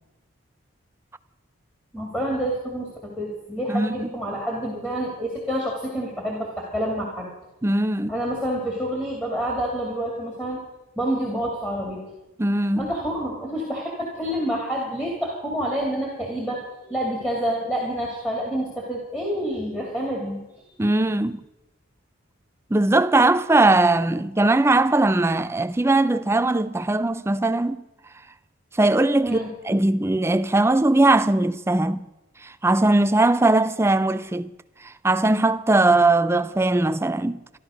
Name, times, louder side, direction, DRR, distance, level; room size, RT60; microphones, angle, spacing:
voice 1, 1.9-7.3 8.1-10.6 11.0-12.0 12.8-20.4 29.2-29.5, equal, 5° left, 2.5 m, -28 dB
voice 2, 3.7-4.1 7.6-8.1 12.4-12.9 20.8-21.4 22.7-27.8 28.7-32.1 32.4-34.5 34.8-37.4, right 2 dB, 10° right, 0.4 m, -20 dB
13.0 x 12.5 x 6.3 m
head